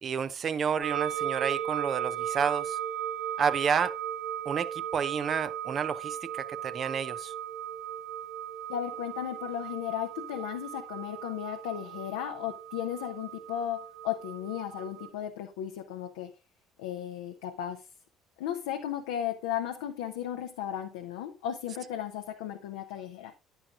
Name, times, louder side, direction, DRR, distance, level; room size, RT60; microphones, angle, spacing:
voice 1, 0.0-2.8 3.4-3.9 4.5-7.3, right 6 dB, 45° right, 0.6 m, -30 dB
sound 1, 0.8-15.1, right 10 dB, 65° right, 1.1 m, -36 dB
voice 2, 8.7-16.3 16.8-17.9 18.4-23.3, left 10 dB, 75° left, 0.7 m, -35 dB
9.9 x 9.0 x 2.4 m
hypercardioid pair, 55°, 0 cm